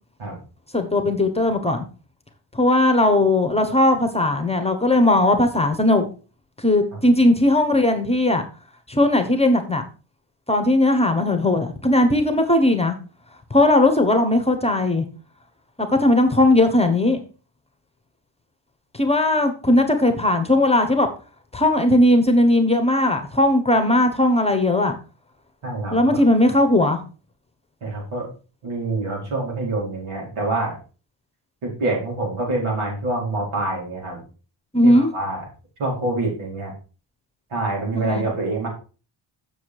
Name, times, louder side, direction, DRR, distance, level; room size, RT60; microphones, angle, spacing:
voice 1, 0.7-1.8 2.5-6.0 6.6-8.4 8.9-9.8 10.5-12.9 13.5-15.0 15.8-17.2 18.9-21.1 21.5-25.0 25.9-27.0 34.7-35.1 37.9-38.3, left 1 dB, 10° left, 6 dB, 1.1 m, -18 dB
voice 2, 25.6-26.2 27.8-28.2 28.6-30.8 31.6-34.2 34.8-35.4 35.8-36.7 37.5-38.7, right 2 dB, 80° right, -2 dB, 4.9 m, -26 dB
7.2 x 6.9 x 4.7 m, 0.36 s
wide cardioid pair, 145°, 49 cm